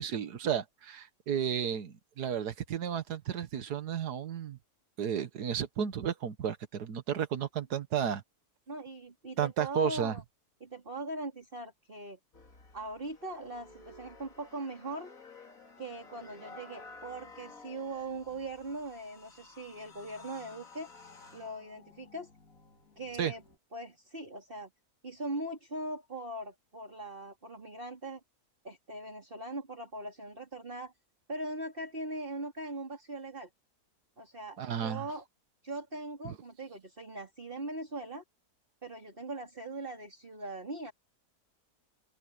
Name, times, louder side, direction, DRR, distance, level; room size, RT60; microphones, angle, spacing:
voice 1, 0.0-4.6 5.0-8.2 9.4-10.1 23.2-23.3 34.6-35.1 36.3-36.4, right 8 dB, 85° right, 1.8 m, -33 dB
voice 2, 8.7-10.2 10.6-12.2 12.7-15.1 15.8-20.9 21.3-22.3 23.0-23.4 23.7-24.7 25.0-28.2 28.6-30.9 31.3-33.5 34.2-35.3 35.6-38.2 38.8-40.9, right 2 dB, 35° right, 4.2 m, -40 dB
sound 1, 12.3-23.6, left 3 dB, 60° left, 3.2 m, -54 dB
open air
omnidirectional pair, 1.7 m